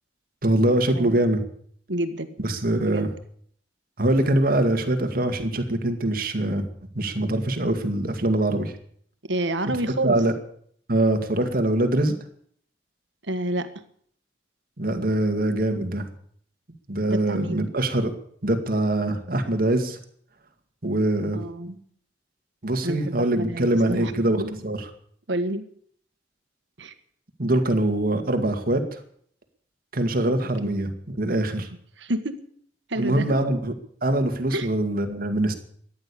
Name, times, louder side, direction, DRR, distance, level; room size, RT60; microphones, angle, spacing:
voice 1, 0.4-1.4 2.4-3.1 4.0-6.7 6.9-8.7 10.0-10.3 10.9-12.2 14.8-16.1 16.9-18.1 18.4-20.0 20.8-21.8 22.6-24.9 27.4-29.0 29.9-31.7 33.0-33.7 34.0-35.5, right 1 dB, 55° right, 6 dB, 2.1 m, -23 dB
voice 2, 1.9-2.3 2.8-3.1 9.3-10.2 13.3-13.7 17.1-17.7 21.3-21.7 22.8-24.1 24.4-24.6 25.3-25.6 26.8-26.9 30.6-30.7 31.6-31.7 32.0-32.4 32.9-33.4 34.5-34.7, right 1 dB, 90° right, 9 dB, 1.7 m, -29 dB
14.5 x 10.5 x 8.6 m, 0.62 s
head